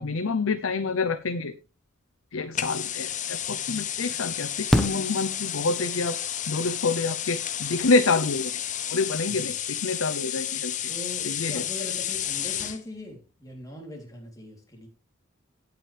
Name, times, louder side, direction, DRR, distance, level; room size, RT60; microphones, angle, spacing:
voice 1, 0.0-1.5 2.3-6.2 6.5-8.5 8.9-10.7 11.2-11.6, left 3 dB, 85° left, 10 dB, 0.7 m, -27 dB
sound 1, 2.5-12.8, left 10 dB, 40° left, 0.7 m, -31 dB
Fireworks, 3.0-3.1 4.7-6.0 7.8-7.9 8.1-8.2, equal, ahead, 1.1 m, -27 dB
voice 2, 10.9-14.9, left 1 dB, 15° left, 0 dB, 3.4 m, -41 dB
17.0 x 5.9 x 3.4 m, 0.32 s
head